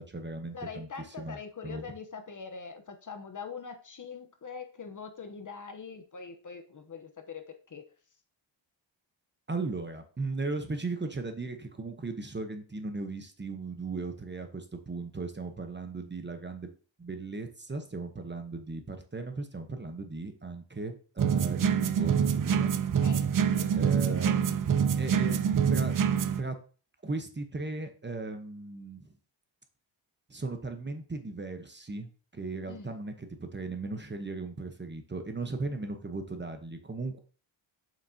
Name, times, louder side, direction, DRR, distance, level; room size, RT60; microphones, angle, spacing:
voice 1, 0.0-0.9 1.2-1.4 1.6-1.8 9.5-16.7 17.0-22.7 23.7-24.6 25.0-25.4 25.7-25.9 26.4-26.5 27.0-29.0 30.3-37.2, right 3 dB, 25° right, 6 dB, 0.9 m, -37 dB
voice 2, 0.5-7.9 23.0-23.3 23.5-23.7 24.1-24.4 32.7-32.9, left 5 dB, 40° left, 7 dB, 0.9 m, -43 dB
sound 1, 21.2-26.4, right 7 dB, 45° right, 0.5 m, -26 dB
7.2 x 6.1 x 2.8 m, 0.38 s
wide cardioid pair, 100°, 47 cm